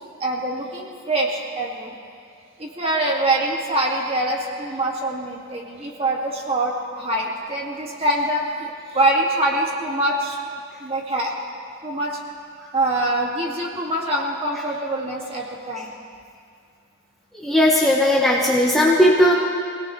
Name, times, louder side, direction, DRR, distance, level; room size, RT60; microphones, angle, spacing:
voice 1, 0.2-1.9 2.6-10.4 10.8-11.3 11.8-12.2 12.7-16.0, right 1 dB, 30° right, -2 dB, 2.3 m, -24 dB
voice 2, 17.4-19.3, left 1 dB, ahead, -5 dB, 1.4 m, -17 dB
24.0 x 18.0 x 3.3 m, 2.2 s
head